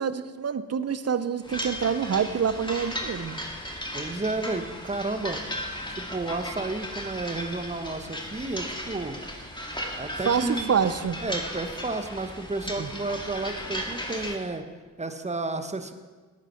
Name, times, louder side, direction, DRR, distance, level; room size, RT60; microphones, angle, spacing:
voice 1, 0.0-3.4 10.2-11.2 12.8-12.9, right 7 dB, 45° right, 13 dB, 0.7 m, -26 dB
sound 1, 1.4-14.3, equal, 15° left, 2.1 m, -36 dB
voice 2, 3.9-5.4 5.9-9.2 10.0-10.7 11.2-14.7 15.0-15.9, right 2 dB, 20° right, 7 dB, 1.1 m, -32 dB
11.5 x 9.1 x 4.4 m, 1.4 s
supercardioid pair, 40°, 37 cm